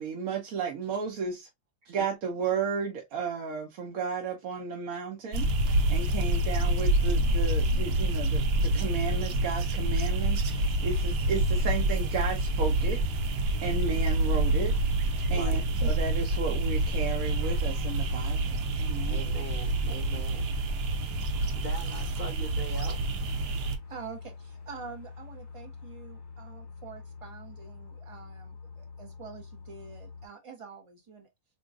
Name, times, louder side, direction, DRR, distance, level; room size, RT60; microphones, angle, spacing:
voice 1, 0.0-1.5 1.9-13.0 13.3-14.7 15.1-19.2, right 5 dB, 65° right, 1.1 m, -34 dB
sound 1, 5.3-23.8, right 1 dB, 90° right, 1.2 m, -27 dB
voice 2, 15.3-15.6 18.9-20.5 21.5-23.1, left 1 dB, 50° right, 2.8 m, -42 dB
sound 2, 16.6-30.3, left 4 dB, 35° left, 1.0 m, -46 dB
voice 3, 23.9-31.3, right 5 dB, 25° right, 0.7 m, -46 dB
3.9 x 2.9 x 2.4 m
omnidirectional pair, 1.7 m